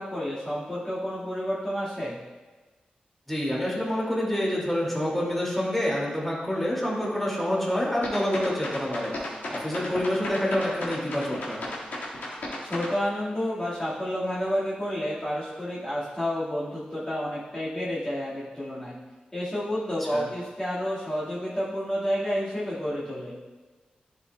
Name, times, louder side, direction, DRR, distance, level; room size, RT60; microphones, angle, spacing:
voice 1, 0.0-2.2 12.6-18.9 19.3-23.3, equal, 25° left, -10 dB, 1.7 m, -30 dB
voice 2, 3.3-11.6 20.1-20.2, left 1 dB, 5° left, -5 dB, 2.1 m, -27 dB
sound 1, 8.0-12.9, left 1 dB, 85° left, 1.7 m, -34 dB
10.5 x 5.3 x 2.2 m, 1.3 s
cardioid pair, 70°, 3 cm